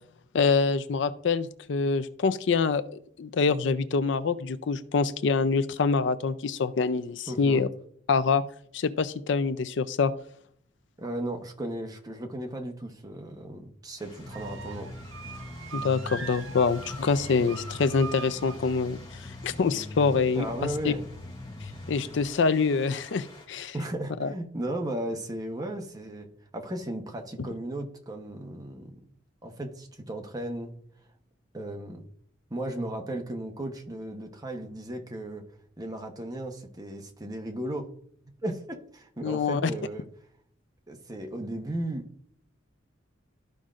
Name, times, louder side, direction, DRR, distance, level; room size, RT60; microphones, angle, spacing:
voice 1, 0.3-2.8 3.2-7.7 8.1-8.4 8.7-10.1 15.7-20.9 21.9-23.7 24.2-24.3 27.4-27.5 39.2-39.7, left 4 dB, 65° left, 13 dB, 0.4 m, -25 dB
voice 2, 7.3-7.6 11.0-14.9 20.3-21.0 23.7-26.3 26.5-29.0 29.4-30.7 31.5-32.0 32.5-35.4 35.8-37.9 38.4-40.1 40.9-42.0, right 1 dB, 20° right, 3 dB, 0.9 m, -35 dB
sound 1, 14.0-23.5, left 2 dB, 30° left, 2.3 m, -51 dB
sound 2, 14.2-22.2, left 2 dB, 15° left, 0.6 m, -42 dB
sound 3, 14.3-18.6, right 5 dB, 80° right, 0.6 m, -42 dB
13.0 x 5.2 x 2.5 m, 0.64 s
head